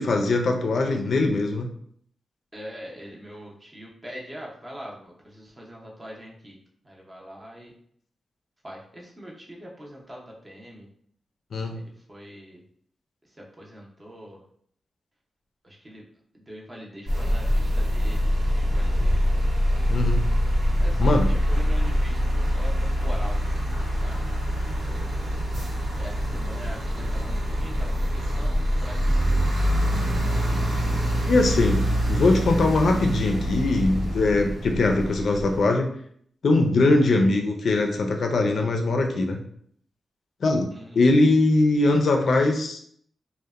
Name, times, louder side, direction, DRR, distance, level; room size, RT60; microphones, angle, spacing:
voice 1, 0.0-1.7 11.5-11.8 19.9-20.3 21.0-21.3 31.3-35.9 36.4-39.4 40.4-40.7 40.9-42.8, left 2 dB, 65° left, 3 dB, 0.3 m, -21 dB
voice 2, 2.5-6.6 6.8-7.7 8.6-10.9 11.7-12.6 13.2-14.4 15.6-16.0 16.3-19.2 20.7-24.2 24.8-25.7 26.0-29.7 40.7-41.0, equal, 20° right, -2 dB, 0.5 m, -43 dB
sound 1, 17.1-35.6, equal, 65° right, 1.0 m, -24 dB
2.8 x 2.0 x 2.3 m, 0.63 s
wide cardioid pair, 140°, 0 cm